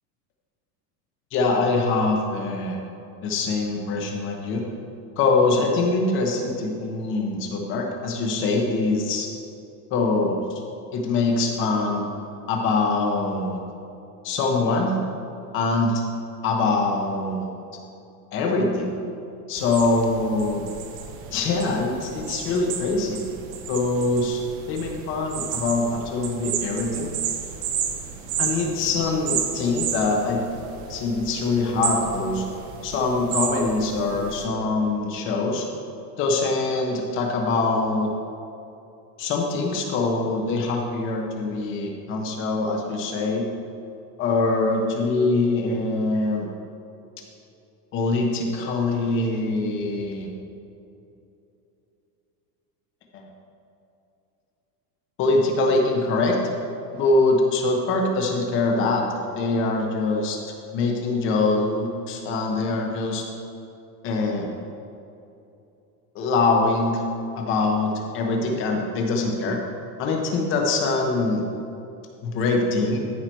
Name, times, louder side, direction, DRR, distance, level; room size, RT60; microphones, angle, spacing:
voice 1, 1.3-2.8 3.2-4.6 5.2-9.3 9.9-10.6 10.9-12.0 12.5-13.6 14.2-15.0 15.5-16.0 16.4-17.5 18.3-18.9 19.5-20.6 21.3-23.2 23.7-24.4 24.7-27.1 28.4-30.4 30.9-32.4 32.8-35.7 36.2-38.1 39.2-43.4 44.2-46.5 47.9-50.3 53.1-53.2 55.2-56.4 56.9-60.4 60.7-63.2 64.0-64.5 66.1-67.0 67.4-69.6 70.0-71.4 72.2-73.0, left 3 dB, 25° left, 1 dB, 1.0 m, -23 dB
sound 1, 19.5-34.4, right 8 dB, 35° right, 0.8 m, -32 dB
14.0 x 5.7 x 4.5 m, 2.7 s
supercardioid pair, 180°, 46 cm